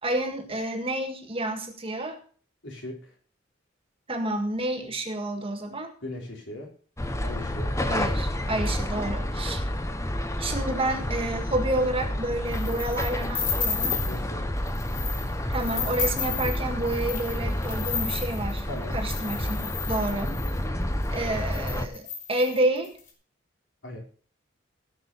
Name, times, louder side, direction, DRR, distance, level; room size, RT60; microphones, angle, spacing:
voice 1, 0.0-2.2 4.1-5.9 7.9-9.6 10.4-14.0 15.5-18.7 18.9-20.4 21.1-23.0, right 1 dB, 30° right, 5 dB, 1.8 m, -29 dB
voice 2, 2.6-3.1 6.0-6.7 7.2-7.8 14.0-14.5 18.6-19.1 23.8-24.0, left 1 dB, 70° left, 0 dB, 4.1 m, -38 dB
sound 1, 7.0-21.9, left 1 dB, 15° left, 0.9 m, -30 dB
sound 2, 12.5-14.2 14.7-15.2 15.5-20.6 21.2-21.3 21.5-23.0, left 6 dB, 45° left, 4.6 m, -33 dB
17.0 x 6.1 x 5.6 m, 0.43 s
head